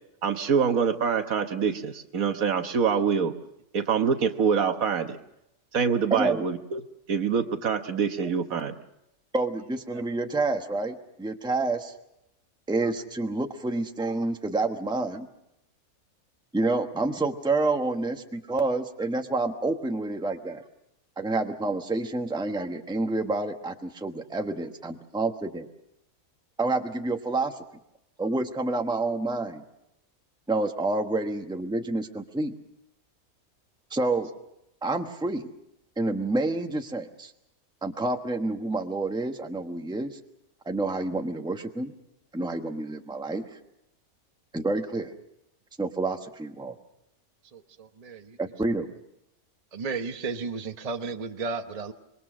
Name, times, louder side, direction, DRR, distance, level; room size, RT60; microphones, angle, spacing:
voice 1, 0.2-3.3 3.7-5.2 5.7-6.8 7.1-8.7, right 6 dB, 70° right, 8 dB, 1.6 m, -25 dB
voice 2, 6.1-6.4 8.2-8.3 9.3-11.9 12.7-15.3 16.5-20.6 21.2-25.7 26.6-27.6 28.2-29.6 30.5-32.6 33.9-34.3 34.8-35.5 36.0-37.3 37.8-40.2 40.6-41.9 42.3-43.4 44.5-45.1 45.8-46.8 48.4-48.9, right 2 dB, 5° right, 5 dB, 1.1 m, -28 dB
voice 3, 47.5-48.4 49.7-51.9, right 4 dB, 30° right, 6 dB, 0.9 m, -34 dB
26.0 x 22.0 x 6.3 m, 0.84 s
omnidirectional pair, 1.6 m